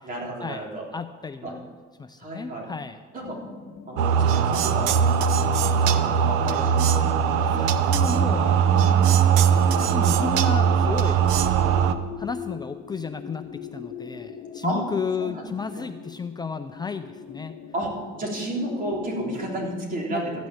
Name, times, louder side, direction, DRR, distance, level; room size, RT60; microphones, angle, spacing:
voice 1, 0.0-0.8 1.4-1.5 2.2-2.7 3.1-3.4 3.9-5.3 5.7-6.9 14.6-14.8 15.2-15.5 15.7-15.8 17.7-17.9 18.2-20.3, right 1 dB, 40° right, -1 dB, 3.6 m, -32 dB
voice 2, 0.9-1.7 2.0-3.0 5.8-6.0 7.5-11.2 12.2-17.6 20.1-20.3, left 5 dB, 20° left, 8 dB, 0.5 m, -33 dB
sound 1, 3.2-19.8, left 8 dB, 75° left, 1.0 m, -40 dB
sound 2, 4.0-11.9, right 8 dB, 90° right, 0.7 m, -20 dB
14.0 x 6.1 x 8.6 m, 1.4 s
cardioid pair, 110°, 21 cm